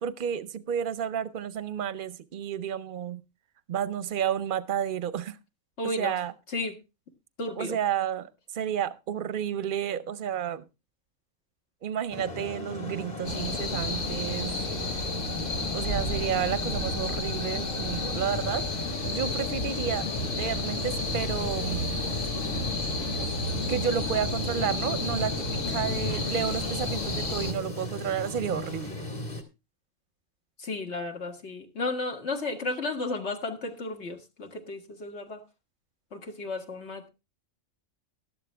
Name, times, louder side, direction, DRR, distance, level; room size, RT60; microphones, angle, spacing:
voice 1, 0.0-3.2 3.7-5.4 5.8-6.3 7.6-10.6 11.8-14.6 15.7-18.6 19.0-20.1 20.3-22.0 23.7-29.1, right 9 dB, 50° right, 15 dB, 0.8 m, -31 dB
voice 2, 5.8-6.2 6.5-6.7 7.4-7.8 30.6-35.4 36.1-37.1, left 2 dB, 60° left, 4 dB, 2.0 m, -33 dB
sound 1, 12.1-29.4, left 2 dB, 35° left, 2.4 m, -37 dB
sound 2, 13.2-27.5, left 2 dB, 75° left, 1.8 m, -31 dB
13.0 x 11.5 x 3.4 m, 0.26 s
omnidirectional pair, 1.3 m